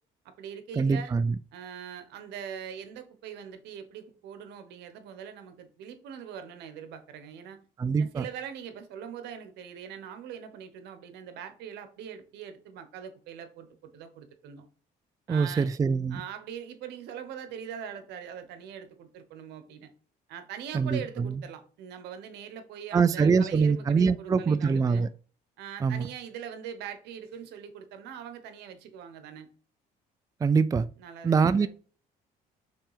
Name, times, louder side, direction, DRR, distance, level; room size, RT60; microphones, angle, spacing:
voice 1, 0.2-1.1 1.5-7.6 8.0-14.7 15.3-15.7 16.1-19.9 20.3-25.1 25.6-29.5 31.0-31.7, right 8 dB, 85° right, 1.2 m, -42 dB
voice 2, 0.8-1.4 7.8-8.2 15.3-16.2 20.7-21.4 22.9-25.1 25.8-26.1 30.4-30.9 31.2-31.7, right 5 dB, 20° right, 0.4 m, -24 dB
5.9 x 3.4 x 4.9 m
cardioid pair, 110°, 17 cm